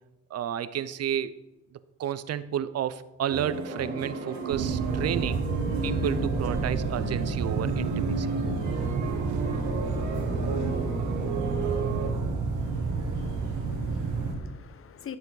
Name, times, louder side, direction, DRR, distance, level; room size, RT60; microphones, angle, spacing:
voice 1, 0.3-1.4 2.0-5.4 5.8-8.3, right 10 dB, 55° right, 0.6 m, -31 dB
sound 1, 3.3-12.1, right 4 dB, 70° right, 2.3 m, -33 dB
sound 2, 4.5-14.3, right 4 dB, 90° right, 1.6 m, -30 dB
voice 2, 12.6-15.2, left 8 dB, 45° left, 0.8 m, -46 dB
11.0 x 7.0 x 3.9 m
cardioid pair, 90°, 30 cm